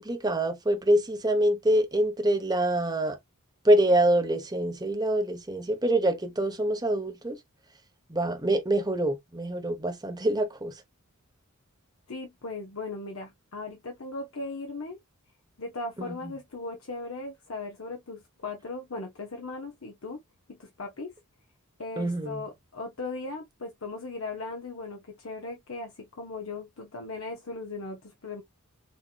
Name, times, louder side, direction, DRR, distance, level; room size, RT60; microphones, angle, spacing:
voice 1, 0.0-3.2 3.6-7.4 8.1-10.8 16.0-16.3 22.0-22.4, right 1 dB, 20° right, 1.0 m, -25 dB
voice 2, 12.1-15.0 15.6-20.2 20.5-21.1 21.8-28.4, left 3 dB, 65° left, 0.9 m, -38 dB
6.2 x 2.9 x 2.4 m
head